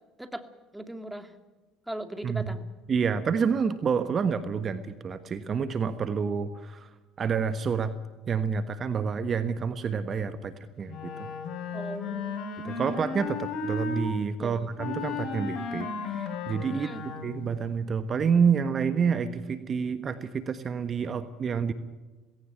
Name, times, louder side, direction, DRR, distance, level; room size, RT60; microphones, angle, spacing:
voice 1, 0.7-1.3 1.9-2.7 11.7-13.0 14.4-14.6 16.7-17.1, right 1 dB, 5° right, 8 dB, 2.3 m, -39 dB
voice 2, 2.2-2.6 2.9-6.9 7.2-7.9 8.3-11.3 12.6-16.9 17.2-21.7, right 6 dB, 40° right, 11 dB, 1.3 m, -28 dB
Wind instrument woodwind instrument, 10.9-14.1 14.8-17.5, left 4 dB, 55° left, 4.5 m, -34 dB
18.5 x 17.0 x 9.0 m, 1.2 s
supercardioid pair, 80°, 0 cm